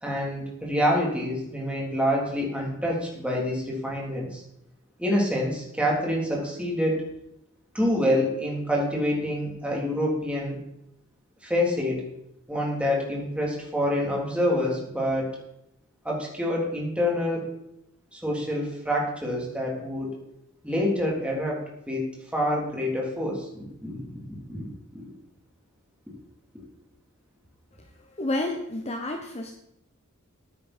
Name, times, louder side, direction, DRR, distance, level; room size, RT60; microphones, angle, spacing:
voice 1, 0.0-4.4 5.0-7.0 7.7-10.6 11.4-12.0 12.5-15.3 16.1-17.5 18.1-20.2 20.6-24.1 24.5-25.0, left 1 dB, 5° right, -3 dB, 3.4 m, -27 dB
voice 2, 28.2-29.5, left 1 dB, 30° left, 4 dB, 1.0 m, -29 dB
14.0 x 9.6 x 4.4 m, 0.79 s
head